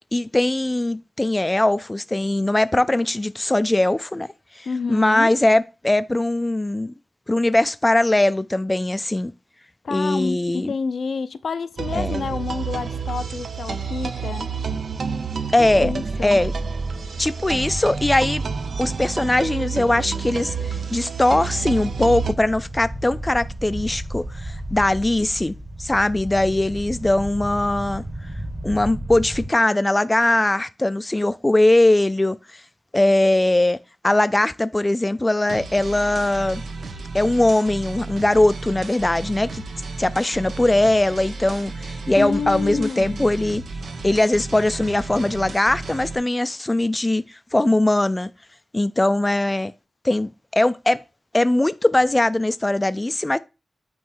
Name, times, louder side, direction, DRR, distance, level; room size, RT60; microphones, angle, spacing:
voice 1, 0.1-4.3 4.6-6.9 7.3-9.3 9.9-10.7 11.9-12.2 15.5-15.9 16.2-16.5 17.2-18.4 18.8-25.5 25.8-28.0 28.6-32.6 32.9-33.8 34.0-36.6 37.1-39.6 40.0-43.6 44.0-48.3 48.7-49.7 50.0-51.0 51.3-53.4, left 1 dB, 20° left, 0.4 m, -20 dB
voice 2, 4.7-5.3 9.8-14.5 15.8-16.4 42.2-43.3, left 5 dB, 80° left, 0.6 m, -28 dB
sound 1, 11.8-22.3, right 5 dB, 70° right, 0.7 m, -28 dB
sound 2, 21.6-29.5, right 1 dB, 25° right, 1.2 m, -33 dB
sound 3, 35.5-46.2, right 3 dB, 85° right, 1.3 m, -34 dB
9.1 x 3.2 x 6.2 m
wide cardioid pair, 100°, 0 cm